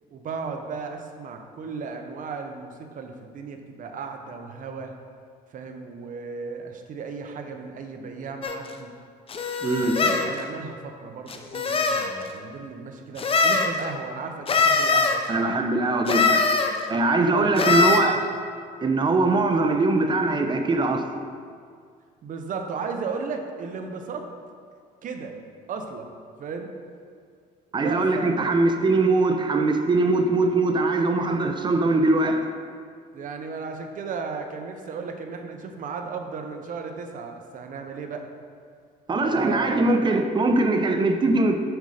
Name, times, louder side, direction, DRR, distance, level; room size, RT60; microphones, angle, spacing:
voice 1, 0.1-4.9 5.5-8.9 9.8-15.2 17.2-18.2 22.2-24.3 25.0-25.4 25.7-26.1 26.4-26.7 27.7-28.3 33.1-38.3 39.2-39.9, right 5 dB, 50° right, 5 dB, 0.9 m, -35 dB
sound 1, 8.4-8.6 9.3-10.3 11.3-12.1 13.2-13.7 14.5-15.2 16.1-16.7 17.6-18.0, left 4 dB, 35° left, 0.7 m, -22 dB
voice 2, 9.6-10.0 15.3-16.5 16.9-18.2 18.8-21.1 27.7-32.5 39.1-41.6, right 2 dB, 25° right, 6 dB, 0.7 m, -21 dB
7.9 x 5.5 x 5.0 m, 2.1 s
cardioid pair, 110°, 17 cm